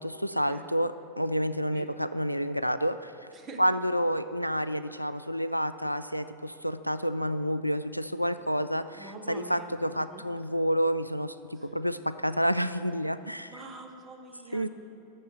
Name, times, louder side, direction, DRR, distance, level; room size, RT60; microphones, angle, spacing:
voice 1, 0.0-3.1 3.6-13.6 14.5-14.7, equal, 90° left, 12 dB, 0.3 m, -29 dB
voice 2, 8.9-10.2 11.6-11.7 13.5-14.7, right 3 dB, 30° right, 4 dB, 1.2 m, -45 dB
9.9 x 6.9 x 8.1 m, 2.7 s
figure-of-eight pair, 90°, 0 cm